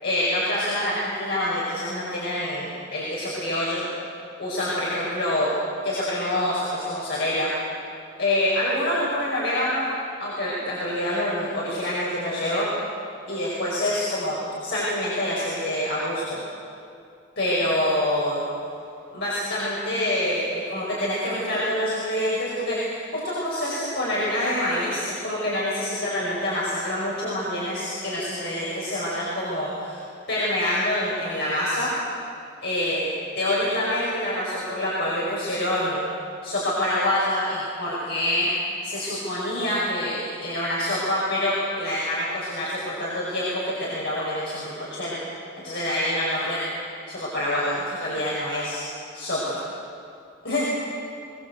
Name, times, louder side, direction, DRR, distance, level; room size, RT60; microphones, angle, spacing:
voice 1, 0.0-3.9 4.4-5.5 5.8-7.5 8.2-9.9 10.2-12.7 13.3-16.4 17.4-18.4 19.1-30.0 30.3-31.9 32.6-33.1 33.4-36.1 36.4-38.5 38.8-45.2 45.6-46.6 47.1-48.8 49.1-49.6 50.4-50.7, left 1 dB, 55° left, -6 dB, 5.4 m, -26 dB
23.0 x 19.0 x 8.1 m, 2.5 s
head